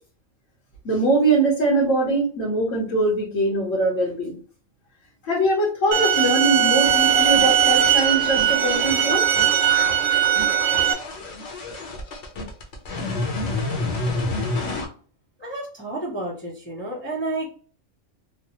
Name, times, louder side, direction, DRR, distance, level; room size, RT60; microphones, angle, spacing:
voice 1, 0.8-4.4 5.3-9.3, right 2 dB, 80° left, -4 dB, 1.3 m, -22 dB
sound 1, 5.9-10.9, right 9 dB, 85° right, 1.0 m, -19 dB
sound 2, 6.9-14.9, left 2 dB, 65° left, 1.1 m, -30 dB
voice 2, 15.4-17.5, right 2 dB, 10° left, -4 dB, 0.7 m, -31 dB
3.2 x 2.0 x 3.0 m, 0.42 s
omnidirectional pair, 1.3 m